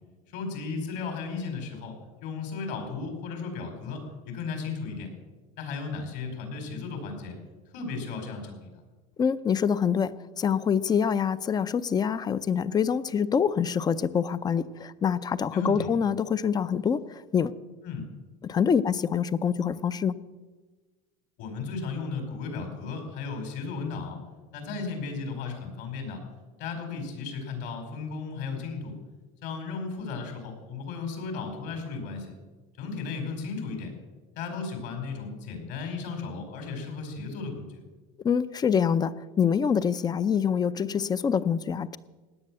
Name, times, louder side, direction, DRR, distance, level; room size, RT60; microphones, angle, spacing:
voice 1, 0.3-1.9 2.2-5.1 5.6-7.4 7.7-8.7 15.5-15.9 17.8-18.1 21.4-24.2 24.5-26.2 26.6-28.9 29.4-32.3 32.8-33.9 34.3-37.8, left 4 dB, 65° left, 4 dB, 5.0 m, -35 dB
voice 2, 9.2-17.5 18.4-20.2 38.2-42.0, left 7 dB, 20° left, 16 dB, 0.6 m, -25 dB
17.0 x 10.0 x 7.5 m, 1.3 s
supercardioid pair, 135°, 19 cm